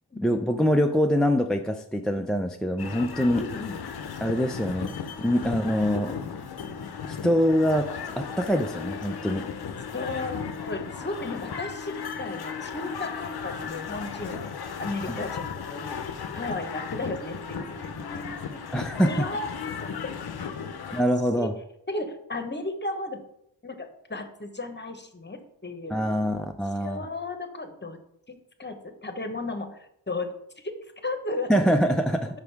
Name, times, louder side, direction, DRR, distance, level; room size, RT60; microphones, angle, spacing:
voice 1, 0.2-3.4 4.2-6.2 7.0-9.4 18.7-19.3 20.9-21.6 25.9-27.1 31.5-32.3, equal, ahead, 3 dB, 0.4 m, -24 dB
sound 1, 2.8-21.0, left 6 dB, 60° left, 0.7 m, -35 dB
voice 2, 3.3-3.8 9.9-14.4 14.8-16.0 16.3-18.6 19.0-20.1 20.6-20.7 21.4-21.5 21.9-23.2 23.6-26.0 26.8-28.0 28.3-30.3 31.0-31.5, left 2 dB, 25° left, 7 dB, 1.0 m, -34 dB
5.3 x 4.9 x 4.6 m, 0.75 s
cardioid pair, 50°, 44 cm